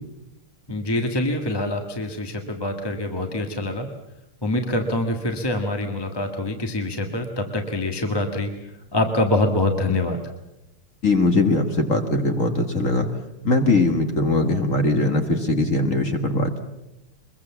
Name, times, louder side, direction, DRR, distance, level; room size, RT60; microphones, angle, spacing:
voice 1, 0.7-3.9 4.4-8.5 8.9-10.2, left 2 dB, 10° left, 4 dB, 1.5 m, -25 dB
voice 2, 11.0-13.1 13.4-16.6, left 2 dB, 40° left, 5 dB, 1.9 m, -21 dB
23.5 x 22.0 x 7.2 m, 0.93 s
omnidirectional pair, 2.4 m